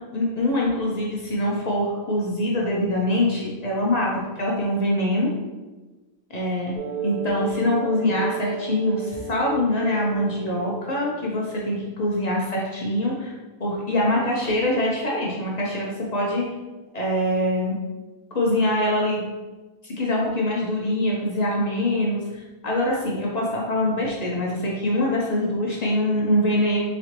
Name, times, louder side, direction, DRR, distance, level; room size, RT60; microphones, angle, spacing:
voice 1, 0.1-4.1 4.4-5.3 6.3-6.7 7.0-13.3 13.6-16.4 16.9-17.8 18.3-19.3 19.8-26.8, left 1 dB, 50° left, -3 dB, 0.5 m, -24 dB
sound 1, 6.8-11.4, right 4 dB, 50° right, 0.6 m, -33 dB
4.1 x 3.1 x 2.9 m, 1.2 s
omnidirectional pair, 1.5 m